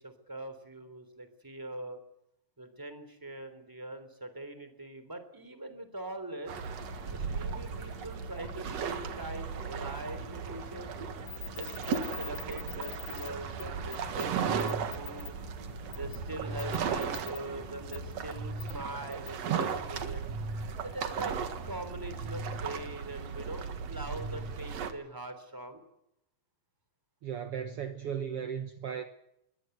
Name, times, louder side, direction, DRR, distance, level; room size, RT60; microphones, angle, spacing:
voice 1, 0.0-2.0 2.6-6.5 7.1-10.9 11.5-15.4 15.9-20.2 20.8-25.8, right 2 dB, 5° right, 2.9 m, -42 dB
sound 1, 6.5-24.9, right 6 dB, 50° right, 2.4 m, -36 dB
sound 2, 6.8-18.4, left 2 dB, 20° left, 0.9 m, -51 dB
sound 3, 11.3-13.3 13.6-13.7 13.9-14.3 14.6-15.3 15.9-16.2 16.6-17.4 17.9-18.0 18.6-18.7 19.1-19.3, left 13 dB, 60° left, 3.9 m, -43 dB
voice 2, 27.2-29.0, right 8 dB, 70° right, 1.4 m, -36 dB
23.0 x 17.5 x 8.2 m
omnidirectional pair, 4.2 m